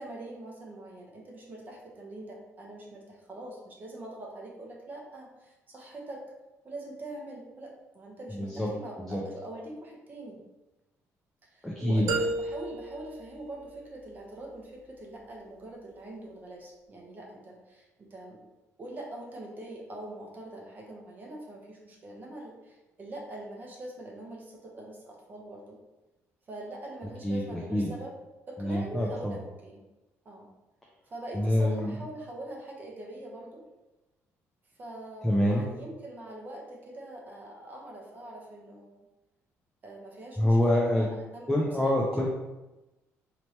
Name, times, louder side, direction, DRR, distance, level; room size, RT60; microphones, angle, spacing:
voice 1, 0.0-6.2 6.6-10.4 11.4-18.4 18.8-25.8 26.5-28.2 28.5-29.8 30.2-30.5 31.1-33.6 34.8-38.9 39.8-41.9, right 1 dB, 35° right, -1 dB, 0.9 m, -43 dB
voice 2, 8.3-8.7 9.0-9.2 11.6-12.1 27.2-27.9 28.6-29.4 31.3-31.9 35.2-35.7 40.4-41.0 41.5-42.3, left 1 dB, 5° left, -3 dB, 0.5 m, -26 dB
sound 1, 12.1-14.1, right 3 dB, 85° right, 0.6 m, -33 dB
4.2 x 2.9 x 3.2 m, 1.0 s
cardioid pair, 135°, 6 cm